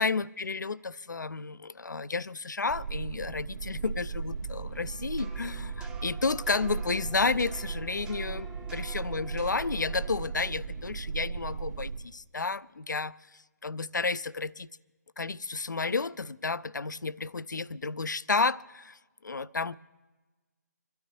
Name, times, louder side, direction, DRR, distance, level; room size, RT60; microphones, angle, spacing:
voice 1, 0.0-14.7 15.2-19.7, left 4 dB, 85° left, 0.4 m, -32 dB
sound 1, 2.7-12.0, right 5 dB, 70° right, 2.0 m, -37 dB
sound 2, 4.7-10.6, right 4 dB, 5° right, 0.6 m, -49 dB
26.5 x 12.5 x 3.1 m
figure-of-eight pair, 140°, 10 cm